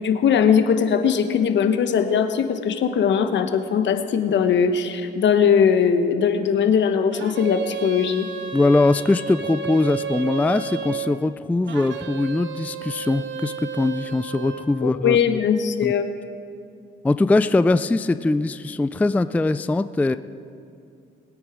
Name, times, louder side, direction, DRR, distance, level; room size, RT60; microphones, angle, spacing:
voice 1, 0.0-8.3 14.8-16.1, left 7 dB, 65° left, 8 dB, 1.1 m, -20 dB
sound 1, 7.1-11.1 11.7-14.7, right 7 dB, 70° right, 1.1 m, -32 dB
voice 2, 8.5-15.4 15.8-15.9 17.0-20.2, left 2 dB, 10° left, 13 dB, 0.3 m, -21 dB
21.0 x 9.2 x 4.9 m, 2.5 s
cardioid pair, 90°, 20 cm